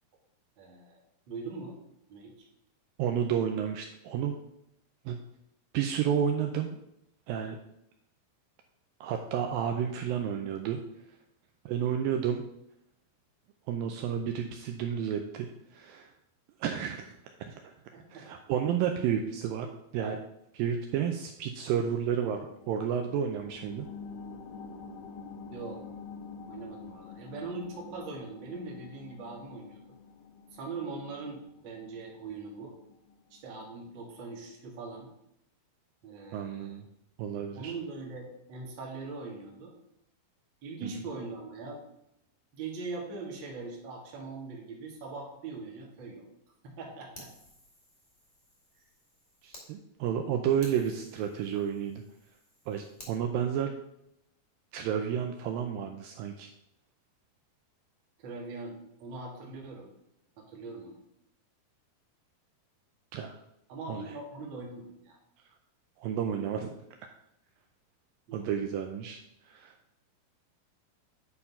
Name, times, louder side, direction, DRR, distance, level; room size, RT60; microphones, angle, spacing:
voice 1, 0.6-1.0 1.3-1.8 2.1-2.5 17.9-18.2 25.5-25.8 26.5-29.8 30.5-32.7 33.3-35.1 36.0-36.8 37.5-39.7 40.6-41.8 42.5-46.2 46.6-47.3 58.2-59.9 60.4-61.0 63.7-65.2 68.3-68.4, right 3 dB, 45° right, -1 dB, 1.6 m, -41 dB
voice 2, 3.0-4.4 5.1-5.2 5.7-6.8 7.3-7.6 9.0-10.8 11.7-12.4 13.7-15.5 15.7-16.1 16.6-17.1 17.5-17.6 18.1-19.7 19.9-20.2 20.5-22.4 22.7-23.9 36.3-36.8 37.2-37.7 40.8-40.9 49.4-52.0 52.7-53.7 54.7-56.5 63.1-63.4 63.9-64.0 66.0-66.7 68.3-69.7, right 8 dB, 85° right, 4 dB, 2.1 m, -31 dB
sound 1, 22.5-33.6 34.0-34.1, left 5 dB, 80° left, 2.4 m, -48 dB
Fire, 47.1-49.7 50.1-50.2 50.6-53.2, left 1 dB, 10° left, 1.2 m, -53 dB
9.9 x 4.5 x 5.6 m, 0.79 s
omnidirectional pair, 4.7 m